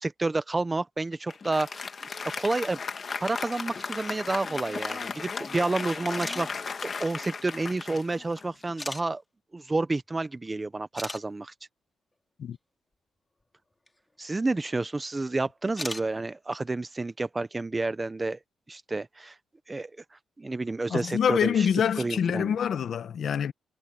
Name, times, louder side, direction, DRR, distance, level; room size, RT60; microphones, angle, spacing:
voice 1, 0.0-1.9 2.4-2.8 3.2-9.2 9.5-11.5 14.2-18.4 18.7-19.3 19.7-19.9 20.4-21.7 22.0-22.5, right 3 dB, 15° right, 0.6 m, -30 dB
Applause, 1.3-8.9, left 5 dB, 30° left, 1.4 m, -36 dB
sound 1, 6.2-6.4 7.5-7.6 8.8-9.0 10.5-10.6 11.0-11.2 13.9-14.0 15.7-16.1, left 2 dB, 10° left, 2.2 m, -36 dB
voice 2, 20.9-23.5, left 8 dB, 50° left, 0.9 m, -26 dB
wide cardioid pair, 175°, 0 cm